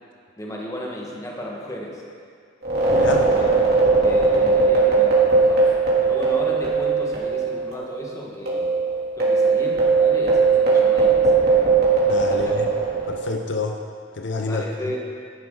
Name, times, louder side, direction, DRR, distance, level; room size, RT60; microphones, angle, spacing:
voice 1, 0.4-2.0 3.3-3.4 3.7-5.7 6.0-8.7 9.2-11.8 12.1-12.6 14.5-15.0, equal, 15° left, -2 dB, 1.5 m, -34 dB
sound 1, 2.6-7.5 7.7-7.8 8.5-13.2, right 4 dB, 55° right, 2.8 m, -18 dB
voice 2, 2.9-3.3 12.1-12.7 13.1-13.9 14.1-14.9, left 3 dB, 65° left, 4 dB, 0.6 m, -28 dB
11.5 x 10.5 x 3.8 m, 2.2 s
head